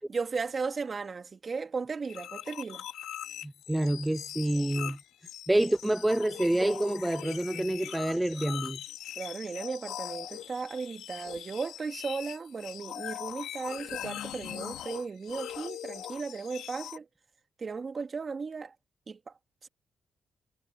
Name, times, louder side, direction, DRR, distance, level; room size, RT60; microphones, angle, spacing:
voice 1, 0.1-2.8 9.2-17.1 17.6-18.7 19.1-19.2 19.6-19.7, right 4 dB, 45° right, 2.5 m, -36 dB
sound 1, 2.1-17.0, left 11 dB, 85° left, 2.4 m, -41 dB
voice 2, 3.4-5.0 5.5-8.8, right 1 dB, 10° right, 0.9 m, -27 dB
cardioid pair, 65°, 0 cm